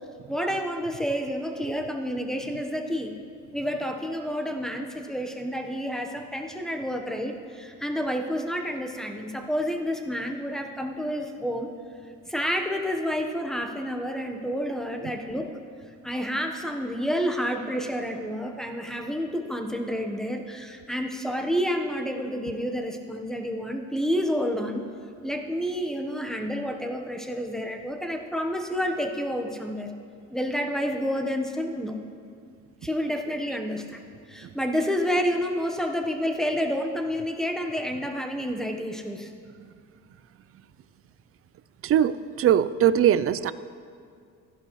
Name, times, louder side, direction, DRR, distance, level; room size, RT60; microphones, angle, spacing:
voice 1, 0.3-3.1 3.5-11.7 12.3-15.5 16.0-24.8 25.2-29.9 30.3-32.0 32.8-34.0 34.3-39.3, equal, ahead, 3 dB, 1.1 m, -29 dB
voice 2, 41.8-43.5, right 10 dB, 50° right, 16 dB, 0.4 m, -21 dB
15.0 x 11.5 x 3.1 m, 2.3 s
cardioid pair, 90°, 30 cm